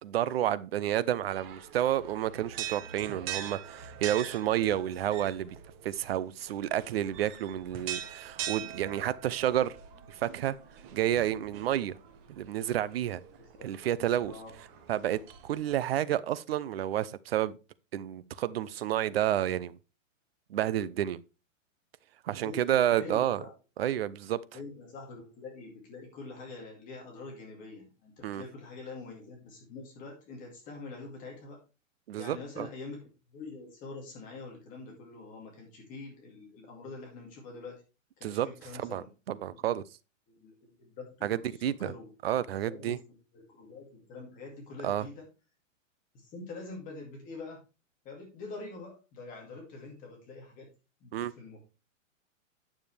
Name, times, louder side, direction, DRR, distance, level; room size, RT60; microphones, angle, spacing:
voice 1, 0.0-5.6 5.8-9.7 10.2-10.5 10.9-12.0 12.3-13.2 13.6-14.3 14.9-17.6 17.9-19.7 20.5-21.2 22.2-23.4 23.8-24.4 28.2-28.4 32.1-32.7 38.2-38.5 38.8-39.8 41.2-41.9 42.2-43.0 44.8-45.0 51.1-51.3, right 11 dB, 50° right, 0.6 m, -30 dB
sound 1, 1.3-15.7, right 9 dB, 20° right, 0.8 m, -43 dB
voice 2, 13.4-13.7 14.3-14.5 22.4-23.5 24.5-31.6 32.2-33.0 33.3-37.7 38.2-39.1 39.5-39.7 40.3-42.1 42.6-43.0 43.3-45.2 46.1-47.6 48.0-50.7 51.0-51.6, left 3 dB, 20° left, 2.3 m, -45 dB
9.3 x 7.1 x 3.3 m
hypercardioid pair, 165°, 39 cm